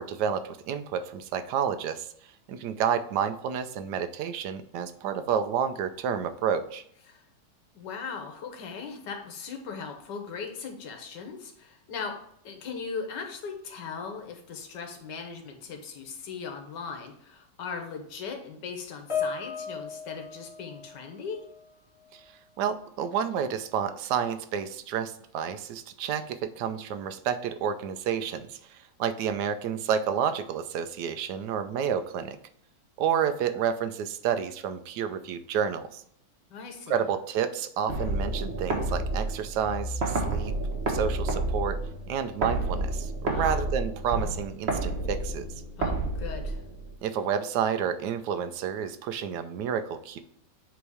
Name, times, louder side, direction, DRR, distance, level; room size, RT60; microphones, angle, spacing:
voice 1, 0.0-2.1 2.5-6.8 22.1-22.2 22.6-32.4 33.0-36.0 36.9-40.5 40.9-41.8 42.1-45.5 47.0-50.2, right 8 dB, 75° right, 10 dB, 1.2 m, -30 dB
voice 2, 7.7-12.1 12.4-21.4 36.5-37.1 43.3-43.6 45.8-46.6, left 5 dB, 80° left, 4 dB, 1.7 m, -38 dB
Piano, 19.1-21.7 22.0-22.3 23.1-23.2, left 6 dB, 25° left, 0.7 m, -36 dB
sound 1, 37.9-46.9, right 2 dB, 40° right, 1.3 m, -30 dB
8.0 x 3.1 x 4.8 m, 0.69 s
omnidirectional pair, 1.9 m